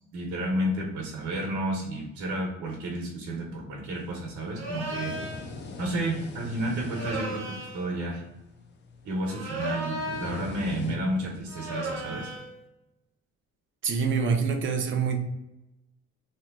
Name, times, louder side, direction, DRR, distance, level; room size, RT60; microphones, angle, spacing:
voice 1, 0.1-5.1 5.8-8.2 9.0-12.3, right 1 dB, 80° right, -2 dB, 1.0 m, -31 dB
sound 1, 3.9-11.4, left 4 dB, 40° left, 0.4 m, -43 dB
sound 2, 4.5-5.5 6.9-7.9 9.3-10.5 11.5-12.5, right 1 dB, 60° right, 1.0 m, -35 dB
voice 2, 13.8-15.2, right 5 dB, 40° right, 4 dB, 0.5 m, -25 dB
3.0 x 2.2 x 3.5 m, 0.93 s
cardioid pair, 140°, 29 cm